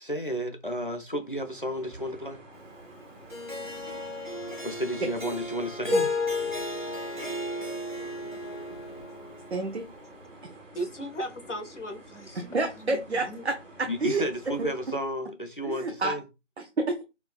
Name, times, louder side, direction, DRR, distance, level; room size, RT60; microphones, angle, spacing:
voice 1, 0.0-2.4 4.6-6.0 13.9-16.2, equal, 45° left, 0.5 m, -32 dB
sound 1, 1.1-15.0, right 1 dB, 85° right, 1.4 m, -49 dB
Harp, 3.3-9.7, left 2 dB, 40° right, 1.0 m, -33 dB
voice 2, 9.5-9.9 12.4-14.3 14.6-14.7 15.6-16.2 16.6-17.0, right 3 dB, 60° right, 0.6 m, -29 dB
voice 3, 10.7-12.5 12.8-13.4, right 1 dB, 70° left, 1.0 m, -37 dB
4.3 x 2.2 x 2.3 m
figure-of-eight pair, 170°, 37 cm